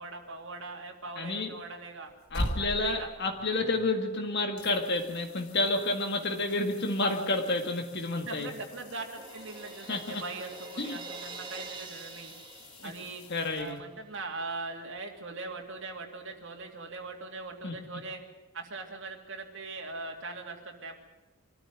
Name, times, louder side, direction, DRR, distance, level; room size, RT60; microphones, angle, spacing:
voice 1, 0.0-2.1 2.6-3.1 8.2-12.3 12.8-13.2 13.6-18.2 18.5-21.0, right 3 dB, 55° right, 1 dB, 2.6 m, -41 dB
voice 2, 1.2-1.5 2.3-8.5 9.9-10.2 10.8-11.0 12.8-12.9 13.3-13.8 17.6-17.7, left 2 dB, 50° left, 4 dB, 2.0 m, -30 dB
sound 1, 2.0-4.2 4.6-14.2 16.9-17.0, left 1 dB, 75° left, 2.2 m, -43 dB
Crash cymbal, 7.9-13.6, right 3 dB, 20° right, 2.4 m, -46 dB
24.0 x 14.0 x 9.4 m, 1.1 s
head